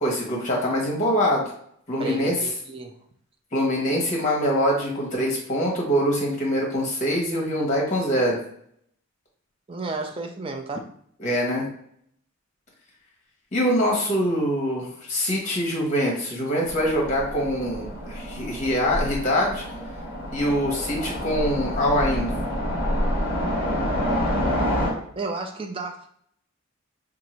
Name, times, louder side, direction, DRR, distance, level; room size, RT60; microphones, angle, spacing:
voice 1, 0.0-1.4 1.9-2.4 3.5-8.4 11.2-11.6 13.5-19.6 20.3-22.3, equal, 35° left, -2 dB, 1.1 m, -24 dB
voice 2, 2.0-2.9 9.7-10.9 25.2-26.1, right 3 dB, 25° right, 3 dB, 0.4 m, -32 dB
Train, 16.7-24.9, equal, 10° right, 1.4 m, -28 dB
2.7 x 2.5 x 4.2 m, 0.67 s
head